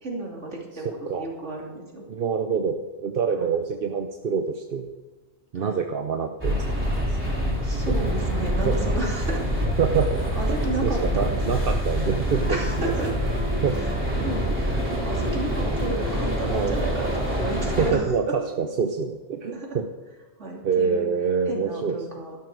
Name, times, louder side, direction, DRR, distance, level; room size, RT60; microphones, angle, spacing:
voice 1, 0.0-2.0 3.4-3.5 5.5-5.8 7.6-9.5 10.3-11.4 12.5-13.1 13.7-13.9 14.2-18.3 19.5-19.7 20.4-21.0 21.5-22.4, right 2 dB, 90° right, -2 dB, 3.2 m, -32 dB
voice 2, 2.1-4.9 5.5-7.4 7.9-8.0 8.6-9.0 9.8-10.2 10.8-12.5 12.8-12.9 13.6-13.8 16.5-16.8 17.8-19.9 20.6-22.0, right 6 dB, 55° right, 5 dB, 0.9 m, -26 dB
sound 1, 6.4-17.9, equal, 10° right, 3.6 m, -26 dB
13.0 x 11.5 x 4.7 m, 1.3 s
omnidirectional pair, 1.2 m